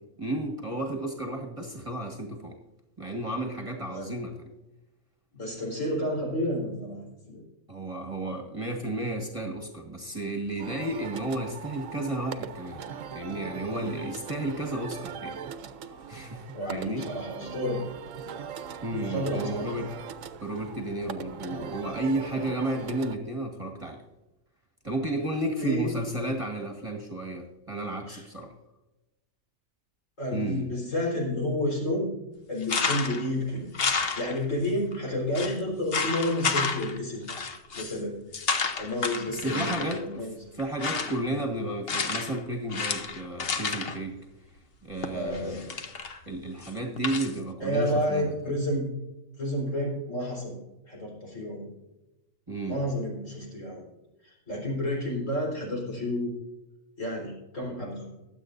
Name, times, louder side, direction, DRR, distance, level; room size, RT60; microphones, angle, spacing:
voice 1, 0.0-2.6 3.0-4.5 7.7-12.8 13.1-15.4 16.1-17.1 18.8-19.9 20.4-24.0 24.8-28.5 30.3-30.7 39.3-40.3 40.5-44.2 44.8-45.8 46.3-48.3 52.5-52.8, right 1 dB, 25° right, 2 dB, 1.5 m, -32 dB
voice 2, 5.3-7.4 16.5-17.8 19.0-19.7 25.6-25.9 28.1-28.2 30.2-32.1 32.5-37.2 37.7-38.1 38.7-40.4 45.1-45.6 47.6-48.9 49.4-50.6 50.9-51.7 52.7-53.8 54.2-56.3 57.0-58.1, left 1 dB, 65° left, -2 dB, 4.6 m, -30 dB
sound 1, 10.6-23.2, right 7 dB, 70° right, 1.0 m, -40 dB
sound 2, 32.6-33.3 33.7-34.7 34.9-35.0 35.4-35.6 35.9-37.0 37.3-38.0 38.3-40.0 40.6-41.3 41.9-42.4 42.7-44.0 45.0-46.2 46.6-47.4, left 5 dB, 50° left, 1.0 m, -30 dB
22.5 x 8.0 x 2.6 m, 1.0 s
omnidirectional pair, 1.4 m